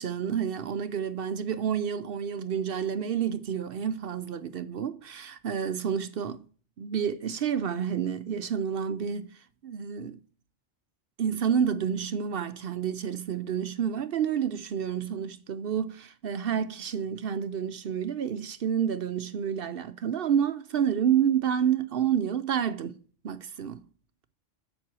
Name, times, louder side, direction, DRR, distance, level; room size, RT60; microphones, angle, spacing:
voice 1, 0.0-6.4 6.8-10.2 11.2-23.0 23.2-23.8, right 8 dB, 60° right, 0.7 m, -29 dB
7.6 x 7.2 x 6.1 m
omnidirectional pair, 1.3 m